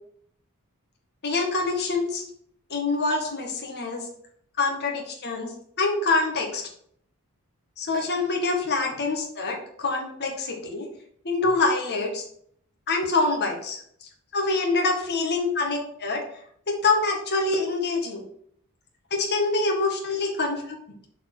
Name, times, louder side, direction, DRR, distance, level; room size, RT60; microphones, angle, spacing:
voice 1, 1.2-2.2 2.7-4.1 4.6-6.6 7.8-10.9 11.2-12.2 12.9-13.8 14.3-16.2 16.7-18.2 19.1-20.6, left 3 dB, 50° left, 1 dB, 1.9 m, -25 dB
6.7 x 4.7 x 6.3 m, 0.65 s
head